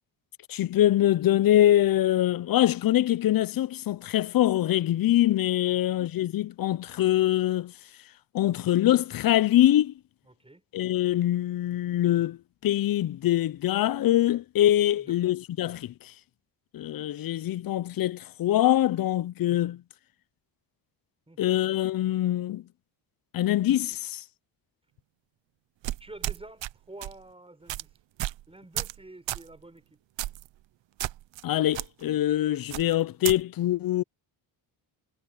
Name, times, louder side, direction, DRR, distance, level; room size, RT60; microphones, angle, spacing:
voice 1, 0.5-7.7 8.3-9.9 10.7-16.1 16.7-19.8 21.4-22.6 23.3-24.2 31.4-34.0, left 13 dB, 50° left, 0.6 m, -24 dB
voice 2, 5.6-6.2 10.3-10.6 15.0-15.2 21.3-21.5 26.0-27.9 28.5-30.0, right 2 dB, 10° right, 7.1 m, -49 dB
sound 1, 25.8-26.7 27.0-27.2 27.7-27.8 28.2-28.4 28.8-29.0 29.3-29.5 30.2-30.5 31.0-31.4 31.7-31.9 32.7-33.4, right 15 dB, 70° right, 0.8 m, -32 dB
cardioid pair, 95°, 47 cm